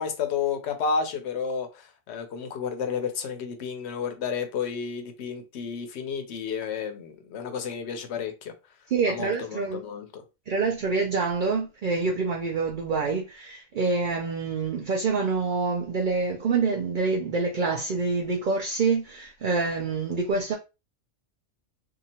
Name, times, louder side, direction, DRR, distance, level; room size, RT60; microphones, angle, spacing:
voice 1, 0.0-8.5 9.1-10.2, left 6 dB, 65° left, 0.8 m, -31 dB
voice 2, 8.9-9.8 10.5-20.5, right 4 dB, 70° right, 0.4 m, -26 dB
2.7 x 2.4 x 2.8 m
omnidirectional pair, 1.4 m